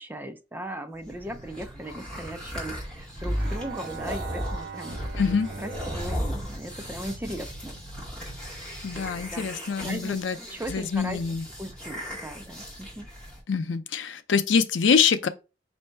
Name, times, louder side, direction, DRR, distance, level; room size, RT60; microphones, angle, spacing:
voice 1, 0.0-7.7 9.0-9.5 9.8-10.2 10.5-11.2 11.6-13.1, right 1 dB, 10° right, 0.5 m, -38 dB
sound 1, 1.0-13.4, equal, 5° left, 1.8 m, -36 dB
Bowed string instrument, 3.4-7.8, right 5 dB, 80° right, 0.6 m, -41 dB
voice 2, 5.2-5.5 8.8-10.4 10.7-11.4 13.5-15.3, left 6 dB, 85° left, 0.5 m, -24 dB
5.4 x 2.6 x 3.3 m
head